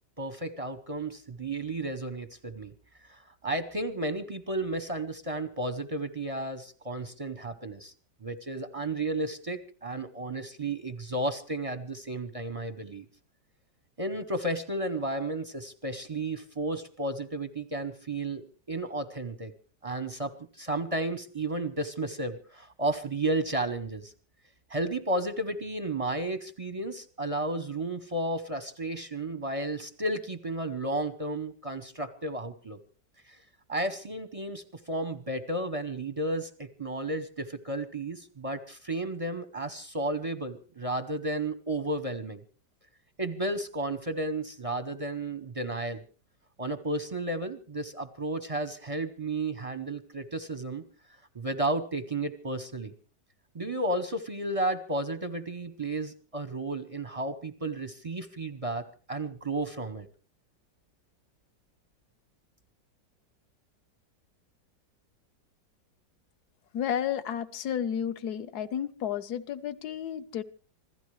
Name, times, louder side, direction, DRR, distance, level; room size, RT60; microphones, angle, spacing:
voice 1, 0.2-2.7 3.1-7.9 8.2-13.0 14.0-19.5 19.8-24.1 24.7-32.8 33.3-33.4 33.7-42.4 43.2-46.0 46.6-50.8 51.3-52.9 53.5-60.1, right 2 dB, 30° right, 10 dB, 0.6 m, -33 dB
voice 2, 66.7-70.4, left 9 dB, 60° left, 13 dB, 1.4 m, -32 dB
26.0 x 16.5 x 3.2 m, 0.39 s
omnidirectional pair, 2.0 m